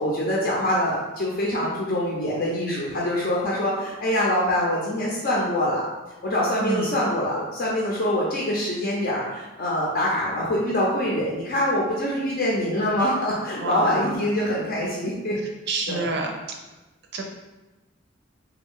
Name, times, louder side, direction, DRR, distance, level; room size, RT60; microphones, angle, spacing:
voice 1, 0.0-5.9 6.2-15.4 15.9-16.2, left 1 dB, 50° left, -4 dB, 0.5 m, -24 dB
voice 2, 13.6-14.1 15.7-16.3 17.1-17.2, right 3 dB, 60° right, 2 dB, 0.5 m, -27 dB
3.3 x 2.3 x 3.5 m, 1.1 s
head